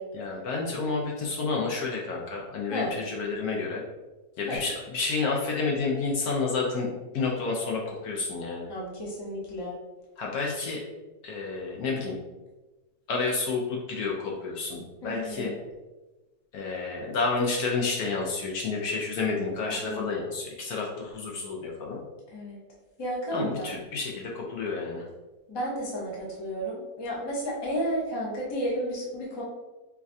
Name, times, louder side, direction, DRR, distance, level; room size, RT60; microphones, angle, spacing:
voice 1, 0.1-3.8 4.4-8.7 10.2-10.8 11.2-12.2 13.1-15.5 16.5-22.0 23.3-25.0, left 4 dB, 70° left, -1 dB, 1.0 m, -30 dB
voice 2, 8.7-9.7 15.0-15.5 19.6-20.1 22.3-22.6 23.0-23.7 25.5-29.4, equal, 40° left, -4 dB, 0.3 m, -32 dB
4.7 x 2.2 x 2.6 m, 1.1 s
omnidirectional pair, 1.9 m